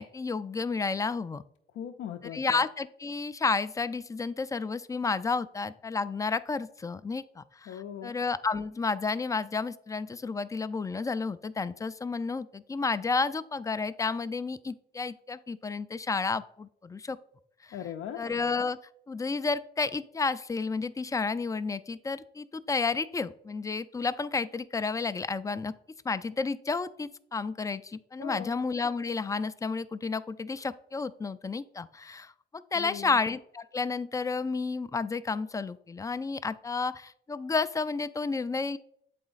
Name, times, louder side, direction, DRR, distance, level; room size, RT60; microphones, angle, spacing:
voice 1, 0.0-1.4 2.3-17.2 18.2-18.8 19.1-25.7 26.0-38.8, left 4 dB, 15° left, 14 dB, 0.3 m, -31 dB
voice 2, 1.7-2.6 7.7-8.1 17.7-18.3 28.2-28.5 32.8-33.2, left 9 dB, 75° left, 3 dB, 0.5 m, -39 dB
7.8 x 4.2 x 3.9 m, 0.68 s
cardioid pair, 90°, 20 cm